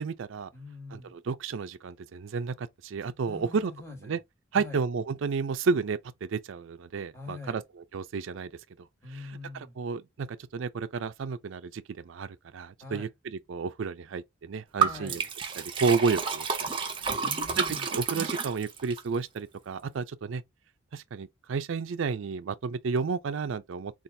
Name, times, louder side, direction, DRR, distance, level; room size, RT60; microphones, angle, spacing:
voice 1, 0.0-0.5 0.9-3.7 4.0-4.2 4.5-8.5 8.8-8.9 9.1-15.2 15.6-16.7 17.0-17.2 17.6-20.4 20.9-23.9, right 5 dB, 75° right, 0.4 m, -32 dB
voice 2, 0.5-1.1 3.2-4.2 4.5-4.8 7.1-7.6 9.0-9.7 12.8-13.1 14.8-15.3 17.2-17.9, left 3 dB, 15° left, 1.3 m, -44 dB
Liquid, 14.8-19.0, right 6 dB, 25° right, 0.7 m, -30 dB
4.2 x 2.4 x 3.2 m
head